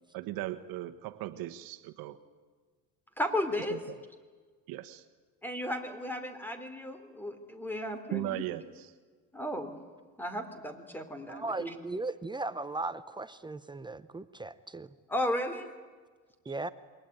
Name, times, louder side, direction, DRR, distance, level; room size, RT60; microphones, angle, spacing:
voice 1, 0.1-2.2 3.7-4.0 4.7-5.0 8.1-8.9 16.4-16.5, right 15 dB, 75° right, 10 dB, 1.3 m, -38 dB
voice 2, 3.2-3.8 5.4-8.4 9.3-9.8 10.2-11.7 15.1-15.7, left 1 dB, 5° left, 9 dB, 3.2 m, -34 dB
voice 3, 11.3-14.9 16.5-16.7, right 3 dB, 15° right, 12 dB, 0.8 m, -37 dB
28.0 x 23.0 x 9.3 m, 1.5 s
cardioid pair, 130°, 36 cm